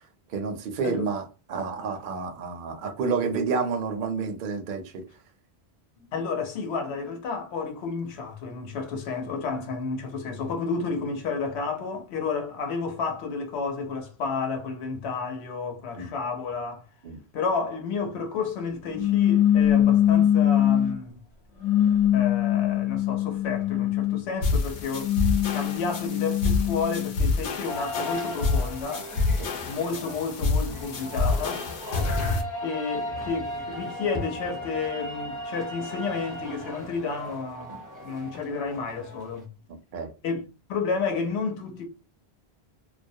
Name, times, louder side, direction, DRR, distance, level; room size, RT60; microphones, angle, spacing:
voice 1, 0.3-1.2 1.5-5.0 16.0-16.1 17.0-17.2 29.4-29.5 32.0-32.1 39.9-40.1, right 5 dB, 65° right, 0.7 m, -29 dB
voice 2, 6.0-16.8 17.3-21.2 22.1-25.1 25.5-29.1 29.7-31.6 32.6-39.5 40.2-40.4 40.7-41.8, left 4 dB, 90° left, 0.9 m, -31 dB
sound 1, 18.9-21.0 21.6-24.3 24.9-27.2, left 11 dB, 40° left, 0.9 m, -23 dB
sound 2, 24.4-32.4, left 3 dB, 65° left, 0.7 m, -28 dB
sound 3, 27.6-39.4, left 1 dB, 20° left, 0.7 m, -36 dB
2.3 x 2.0 x 2.6 m
omnidirectional pair, 1.1 m